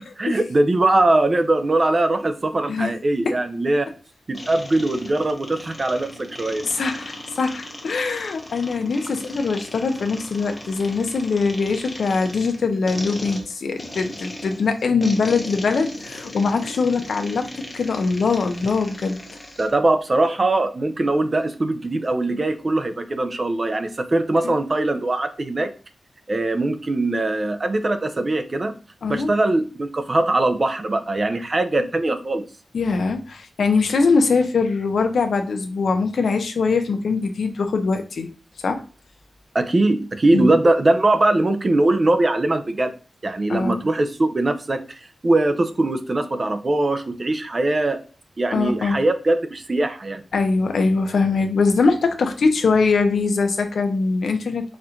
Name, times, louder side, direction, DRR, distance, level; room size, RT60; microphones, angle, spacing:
voice 1, 0.2-3.9 4.3-6.6 19.6-25.7 26.3-28.7 29.1-32.4 39.5-42.9 43.2-48.0 48.4-50.2, right 2 dB, 30° right, 8 dB, 0.5 m, -21 dB
sound 1, 4.3-19.7, left 1 dB, 20° left, 0.9 m, -38 dB
voice 2, 6.6-19.2 24.4-24.6 29.0-29.3 32.7-38.3 38.6-38.8 40.3-40.5 43.5-43.8 48.5-49.0 50.3-54.8, left 4 dB, 75° left, 6 dB, 0.8 m, -22 dB
4.2 x 2.5 x 4.4 m, 0.35 s
wide cardioid pair, 160°, 0 cm